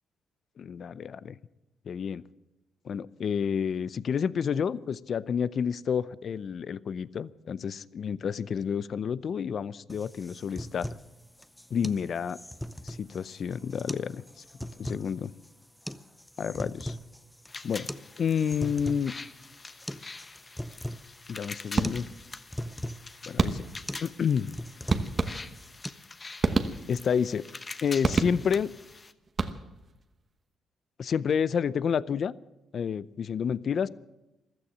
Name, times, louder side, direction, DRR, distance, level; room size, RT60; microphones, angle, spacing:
voice 1, 0.6-1.4 1.9-2.2 2.8-10.9 11.7-12.4 12.9-14.4 14.8-15.3 16.4-17.0 17.6-17.9 18.2-19.2 21.3-22.0 23.2-23.7 24.0-24.6 26.9-27.4 27.8-28.7 31.0-32.3 32.7-33.9, left 7 dB, 55° left, 19 dB, 0.5 m, -29 dB
sound 1, 9.9-25.9, equal, 5° left, 0.7 m, -40 dB
sound 2, 17.5-29.1, left 3 dB, 30° left, 1.0 m, -45 dB
sound 3, 21.8-22.3 23.4-23.9 24.9-25.8 26.4-27.2 28.0-28.7 29.3-29.9, right 4 dB, 35° right, 1.1 m, -29 dB
15.0 x 13.0 x 7.4 m, 0.96 s
cardioid pair, 90°, 0 cm